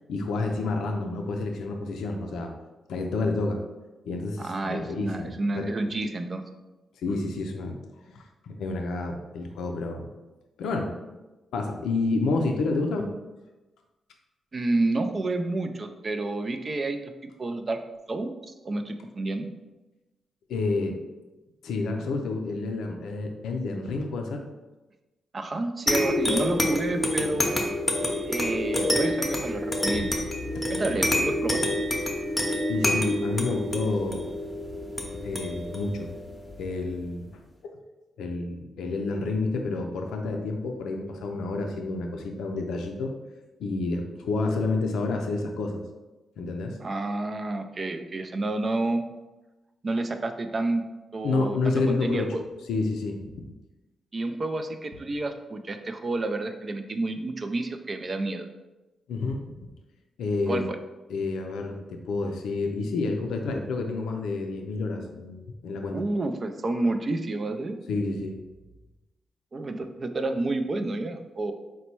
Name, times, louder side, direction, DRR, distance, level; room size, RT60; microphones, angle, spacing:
voice 1, 0.1-2.5 2.9-3.6 4.0-5.7 7.0-7.8 8.1-10.1 10.6-10.9 11.5-13.1 20.5-21.0 21.6-24.4 30.5-30.7 32.7-34.3 35.2-36.1 36.6-37.3 37.6-37.8 38.2-43.1 43.6-45.8 46.4-46.8 51.2-52.4 52.7-53.4 59.1-59.4 60.2-60.6 61.1-66.0 67.9-68.4, left 3 dB, 85° left, 3 dB, 0.4 m, -29 dB
voice 2, 4.4-6.4 14.5-17.1 17.4-17.8 18.1-18.3 18.6-19.5 25.3-27.6 28.3-30.3 30.7-31.6 46.8-49.0 49.8-50.8 51.1-52.4 54.1-58.5 60.5-60.6 65.9-67.8 69.5-71.5, right 2 dB, 40° right, 7 dB, 0.4 m, -29 dB
sound 1, 25.9-36.9, left 1 dB, 20° left, 0.8 m, -28 dB
4.1 x 2.2 x 4.4 m, 1.1 s
cardioid pair, 70°, 0 cm